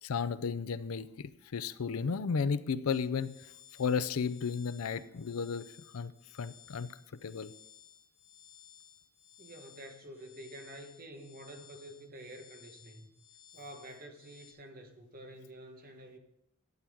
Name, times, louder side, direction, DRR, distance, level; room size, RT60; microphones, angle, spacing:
voice 1, 0.0-3.4 3.8-5.6 5.9-6.1 6.4-6.9 7.2-7.5, left 5 dB, 75° left, 15 dB, 0.5 m, -33 dB
sound 1, 2.9-14.5, left 9 dB, 30° left, 2.0 m, -58 dB
voice 2, 9.4-13.1 13.5-16.2, right 1 dB, 40° right, 4 dB, 1.3 m, -49 dB
12.0 x 8.4 x 3.6 m, 0.87 s
head